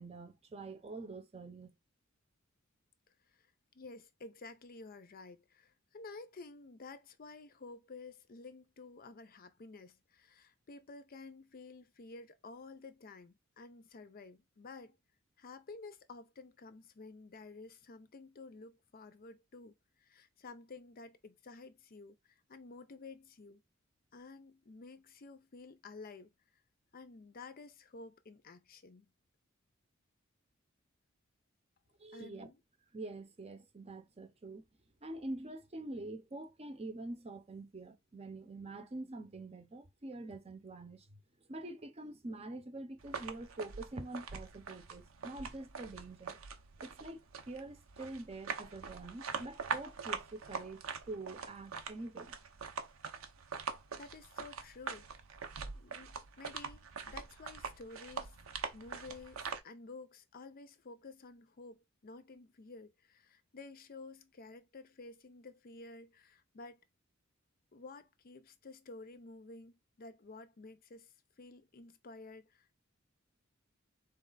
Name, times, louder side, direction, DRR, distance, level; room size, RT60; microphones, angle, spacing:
voice 1, 0.0-1.7 32.0-32.5 32.9-34.6 35.0-41.2 41.5-46.4 46.8-47.2 47.5-52.3, right 2 dB, 30° right, 0.7 m, -45 dB
voice 2, 3.7-15.0 15.4-23.6 24.1-26.3 26.9-29.1 32.1-32.6 54.0-55.1 55.7-58.3 58.7-66.8 67.7-71.1 71.4-72.8, left 3 dB, 45° left, 0.5 m, -52 dB
sound 1, 43.0-59.6, right 5 dB, 85° right, 0.8 m, -44 dB
4.0 x 3.2 x 3.9 m
head